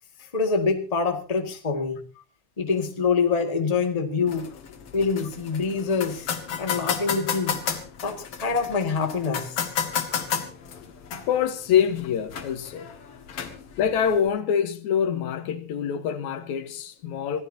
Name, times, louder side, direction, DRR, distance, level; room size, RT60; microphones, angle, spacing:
voice 1, 0.2-2.0 2.6-4.5 4.9-6.3 6.6-7.6 8.0-9.6, left 5 dB, 15° left, 1.5 m, -25 dB
sound 1, 4.3-14.3, left 7 dB, 55° left, 2.5 m, -33 dB
voice 2, 11.3-12.9 13.8-17.4, left 8 dB, 75° left, 2.5 m, -25 dB
25.5 x 15.5 x 2.8 m
omnidirectional pair, 3.4 m